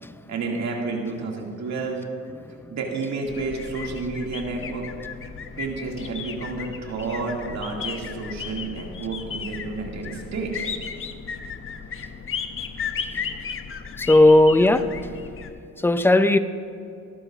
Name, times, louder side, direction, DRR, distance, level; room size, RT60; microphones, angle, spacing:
voice 1, 0.3-2.1 2.7-4.9 5.6-10.6, right 3 dB, 65° right, -1 dB, 2.4 m, -30 dB
sound 1, 3.3-15.5, left 6 dB, 45° left, 0.8 m, -35 dB
voice 2, 14.0-14.9 15.8-16.4, left 2 dB, 5° left, 11 dB, 0.5 m, -16 dB
18.0 x 11.5 x 2.5 m, 2.5 s
cardioid pair, 90°, 30 cm